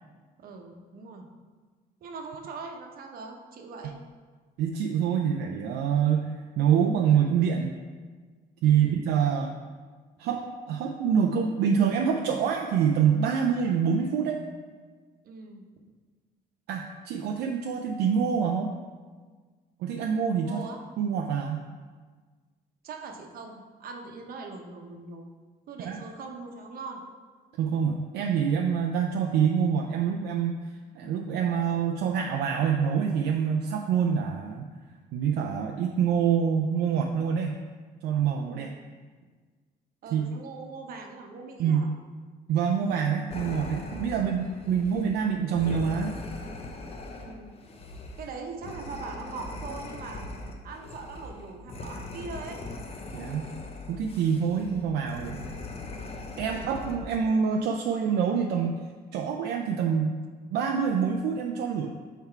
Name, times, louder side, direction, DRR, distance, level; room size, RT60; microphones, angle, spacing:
voice 1, 0.4-1.3 2.0-4.0 8.6-9.0 15.2-15.6 20.4-20.8 22.8-25.3 25.7-27.0 38.5-38.9 40.0-41.9 44.1-44.3 47.1-47.5 48.2-50.3 50.6-52.6 56.3-56.7, right 4 dB, 60° right, 3 dB, 0.9 m, -41 dB
voice 2, 4.6-7.7 8.6-9.6 10.2-14.4 16.7-18.7 19.8-20.6 21.0-21.7 25.9-26.0 27.6-30.6 30.9-34.7 35.1-37.6 38.0-38.7 40.1-40.3 41.6-41.9 42.5-46.1 53.1-53.5 53.9-55.4 56.4-58.8 59.1-60.2 60.5-61.9, right 7 dB, 80° right, 2 dB, 0.5 m, -26 dB
sound 1, 43.3-57.2, left 2 dB, 35° left, 0.7 m, -40 dB
5.8 x 4.6 x 4.5 m, 1.5 s
cardioid pair, 110°, 17 cm